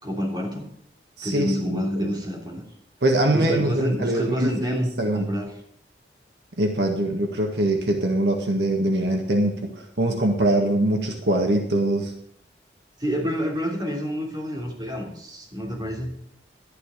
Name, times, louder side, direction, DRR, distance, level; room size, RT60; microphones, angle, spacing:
voice 1, 0.0-0.7 1.2-2.6 3.3-5.5 13.0-16.1, equal, 25° right, -2 dB, 3.3 m, -28 dB
voice 2, 1.2-2.1 3.0-5.3 6.6-12.1, right 1 dB, 75° right, 3 dB, 1.7 m, -23 dB
11.5 x 10.5 x 5.1 m, 0.69 s
head